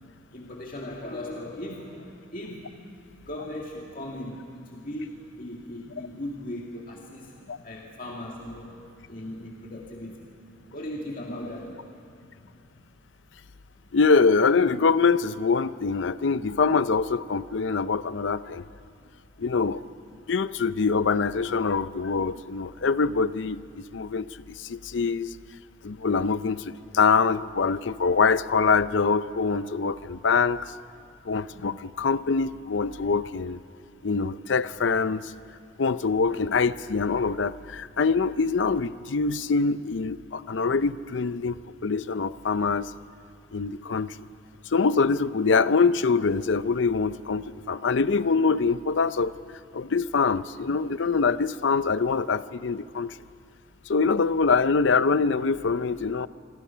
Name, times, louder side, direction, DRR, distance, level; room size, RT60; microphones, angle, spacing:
voice 1, 0.3-2.8 3.2-7.3 7.6-8.7 9.1-10.3 10.7-11.8, left 1 dB, 45° left, -2 dB, 2.1 m, -38 dB
voice 2, 13.9-18.6 19.4-19.8 20.3-24.3 24.6-25.3 25.8-30.7 31.3-33.6 34.0-35.3 35.8-41.6 41.8-42.9 43.5-44.2 44.7-49.3 49.7-53.2 53.9-56.3, left 4 dB, 70° left, 15 dB, 0.6 m, -24 dB
26.5 x 24.5 x 5.7 m, 2.4 s
head